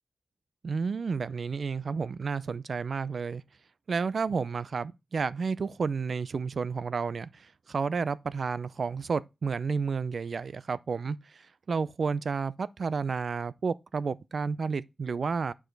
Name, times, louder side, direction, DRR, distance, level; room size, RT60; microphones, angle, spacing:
voice 1, 0.6-3.4 3.9-11.2 11.7-15.5, right 5 dB, 70° right, 0.4 m, -31 dB
8.9 x 4.8 x 3.9 m
wide cardioid pair, 95°, 0 cm